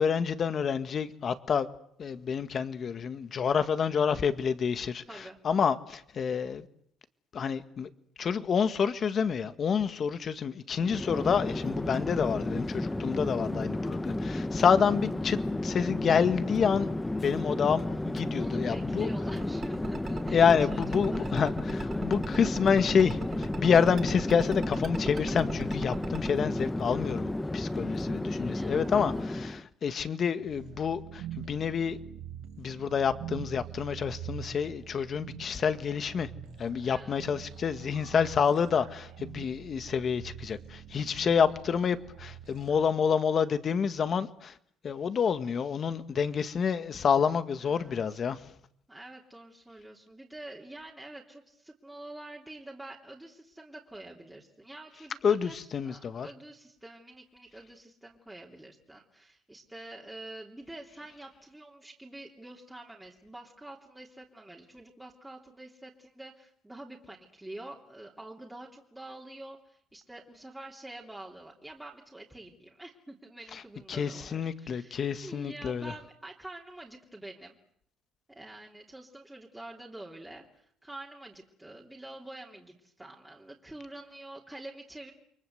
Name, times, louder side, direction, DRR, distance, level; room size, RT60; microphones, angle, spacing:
voice 1, 0.0-1.7 2.0-5.0 5.4-6.7 7.3-7.9 8.2-16.9 17.2-19.1 20.3-32.0 32.6-36.3 36.6-44.5 44.8-48.4 55.2-56.3 73.9-75.9, left 6 dB, 40° left, 11 dB, 1.9 m, -28 dB
Chatter / Fixed-wing aircraft airplane, 10.7-29.7, left 1 dB, 10° left, 1.0 m, -32 dB
voice 2, 18.4-21.4 28.4-28.9 36.8-37.2 47.6-48.2 48.9-55.5 55.8-77.6 78.3-85.1, right 1 dB, 5° right, -2 dB, 3.2 m, -47 dB
sound 1, 19.4-26.3, right 5 dB, 30° right, 3.1 m, -39 dB
sound 2, 30.4-42.9, right 9 dB, 75° right, 5.7 m, -45 dB
29.5 x 23.5 x 8.1 m, 0.69 s
cardioid pair, 120°, 0 cm